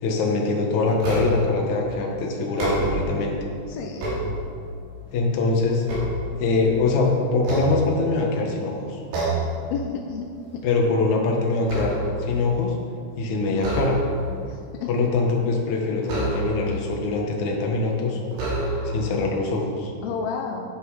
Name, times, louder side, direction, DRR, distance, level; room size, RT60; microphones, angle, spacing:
voice 1, 0.0-3.4 5.1-5.8 6.4-9.0 10.6-12.8 13.2-14.0 14.9-18.2 18.8-19.9, left 3 dB, 60° left, 0 dB, 2.2 m, -23 dB
sound 1, 1.0-1.6 2.4-3.2 3.7-4.8 5.3-6.8 7.4-8.4 9.1-9.6 10.0-10.3 10.6-12.3 13.5-14.4 16.0-16.8 17.6-17.7 18.3-19.1, right 1 dB, 75° right, 5.1 m, -28 dB
voice 2, 3.7-4.0 9.7-10.6 14.8-15.0 20.0-20.7, left 6 dB, 75° left, 2 dB, 2.3 m, -30 dB
11.0 x 10.5 x 4.8 m, 2.3 s
omnidirectional pair, 4.9 m